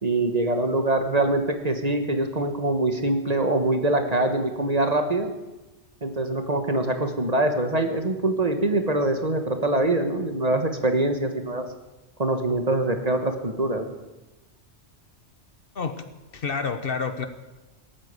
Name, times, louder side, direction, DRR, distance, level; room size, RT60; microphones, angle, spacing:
voice 1, 0.0-5.3 6.0-11.6 12.2-13.8, right 2 dB, 35° right, 6 dB, 1.5 m, -24 dB
voice 2, 15.7-16.1 16.3-17.3, left 5 dB, 55° left, 9 dB, 1.1 m, -28 dB
19.0 x 8.7 x 8.3 m, 1.1 s
omnidirectional pair, 1.2 m